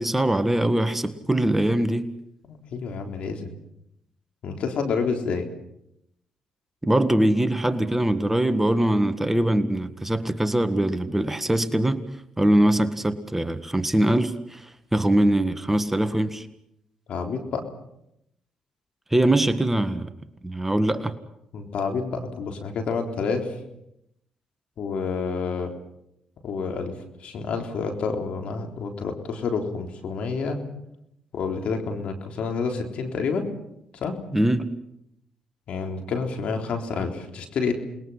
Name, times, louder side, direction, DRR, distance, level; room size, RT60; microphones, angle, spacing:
voice 1, 0.0-2.1 6.8-12.0 12.4-16.5 19.1-20.1 20.4-21.2 34.3-34.8, right 1 dB, 10° right, 1.7 m, -22 dB
voice 2, 2.5-3.5 4.4-5.5 17.1-17.6 21.5-23.5 24.8-25.7 26.4-26.9 27.2-30.6 31.3-33.5 34.0-34.2 35.7-37.7, left 5 dB, 70° left, 3.7 m, -28 dB
28.5 x 21.0 x 5.7 m
supercardioid pair, 55°, 2 cm